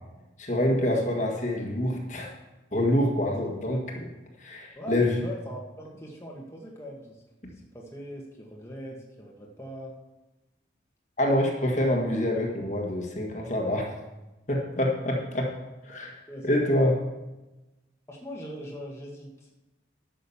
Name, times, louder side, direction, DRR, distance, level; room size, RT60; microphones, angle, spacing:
voice 1, 0.4-2.3 2.7-4.1 4.4-5.2 11.2-13.9 14.5-15.5 15.9-16.2 16.4-17.0, left 1 dB, 40° left, 0 dB, 1.7 m, -26 dB
voice 2, 4.8-9.9 15.9-16.9 18.1-19.5, equal, 15° left, -3 dB, 1.6 m, -41 dB
11.0 x 6.4 x 7.2 m, 1.0 s
head